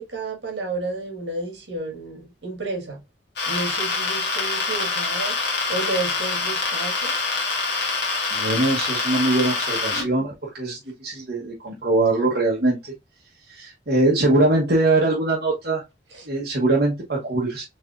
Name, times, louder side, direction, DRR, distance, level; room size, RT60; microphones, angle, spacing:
voice 1, 0.0-3.0 3.5-7.3 9.9-10.1 16.2-16.3, right 2 dB, 75° right, 1.8 m, -31 dB
sound 1, 3.4-10.0, left 4 dB, 65° left, 1.4 m, -25 dB
voice 2, 8.3-12.8 13.5-15.8 16.3-17.6, right 2 dB, 60° right, 1.1 m, -22 dB
4.6 x 2.9 x 2.5 m
head